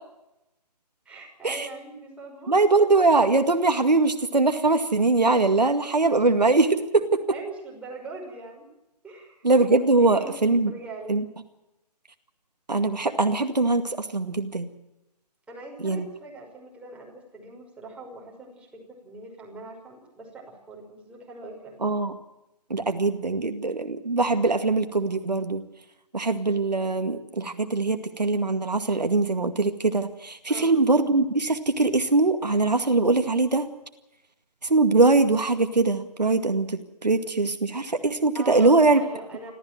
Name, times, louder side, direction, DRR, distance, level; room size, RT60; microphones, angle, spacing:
voice 1, 1.1-2.7 6.2-6.3 7.3-8.7 9.0-9.5 10.0-11.3 15.5-22.0 30.5-30.8 38.3-39.5, right 3 dB, 5° right, -2 dB, 5.8 m, -42 dB
voice 2, 2.5-7.2 9.4-10.7 11.1-11.2 12.7-14.7 15.8-16.0 21.8-22.1 22.7-25.6 26.1-33.7 34.7-39.0, right 3 dB, 80° right, 7 dB, 2.1 m, -22 dB
28.0 x 14.5 x 7.7 m, 0.93 s
figure-of-eight pair, 135°, 21 cm